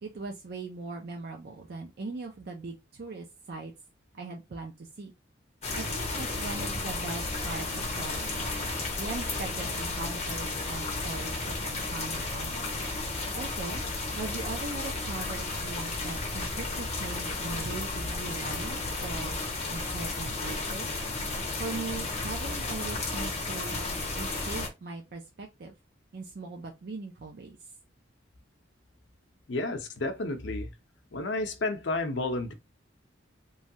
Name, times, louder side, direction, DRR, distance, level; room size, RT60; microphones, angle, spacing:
voice 1, 0.0-3.7 4.1-5.1 5.7-12.9 13.3-13.8 14.2-19.4 19.7-20.9 21.6-23.8 24.1-25.7 26.1-27.7, right 3 dB, 55° right, 0.5 m, -40 dB
sound 1, 5.6-24.7, left 2 dB, 35° left, 0.8 m, -33 dB
voice 2, 29.5-30.7 31.1-32.5, left 2 dB, 65° left, 0.6 m, -31 dB
3.1 x 2.3 x 2.7 m
head